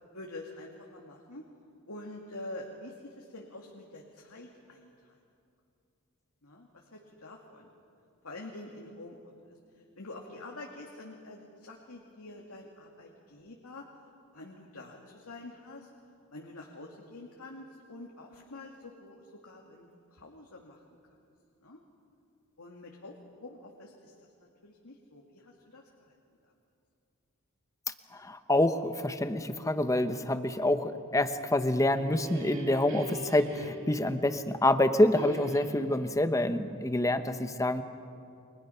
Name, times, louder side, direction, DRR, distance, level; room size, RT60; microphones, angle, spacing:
voice 1, 0.1-1.4 1.9-5.2 6.4-7.7 8.2-13.8 14.3-15.9 16.3-20.8 21.6-21.8 22.6-26.2, left 2 dB, 85° left, 0 dB, 2.2 m, -47 dB
voice 2, 28.1-37.8, left 1 dB, 15° left, 9 dB, 1.0 m, -27 dB
sound 1, 31.7-34.7 35.1-36.1, right 1 dB, 60° right, 2.5 m, -43 dB
29.5 x 24.5 x 5.7 m, 2.5 s
head